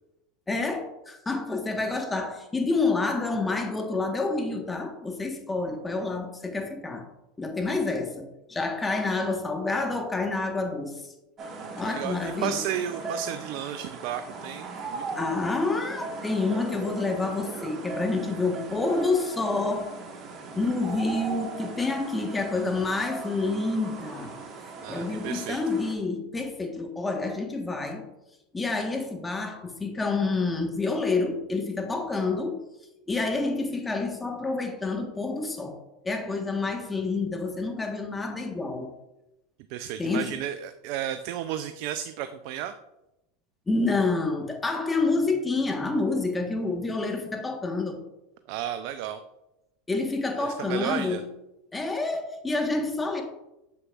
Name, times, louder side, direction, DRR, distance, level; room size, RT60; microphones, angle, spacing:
voice 1, 0.5-7.0 7.4-11.0 11.7-12.6 15.2-19.9 20.5-24.3 24.9-28.1 28.5-32.6 33.1-35.8 36.0-38.9 40.0-40.4 43.7-48.0 49.9-51.3 51.7-53.2, left 3 dB, 15° left, 3 dB, 1.2 m, -28 dB
sound 1, 11.4-25.9, right 4 dB, 40° right, 1.4 m, -39 dB
voice 2, 11.6-15.2 24.8-25.6 39.7-42.7 48.5-49.2 50.3-51.2, right 10 dB, 60° right, 10 dB, 0.3 m, -33 dB
7.0 x 6.6 x 2.4 m, 0.92 s
hypercardioid pair, 85°, 0 cm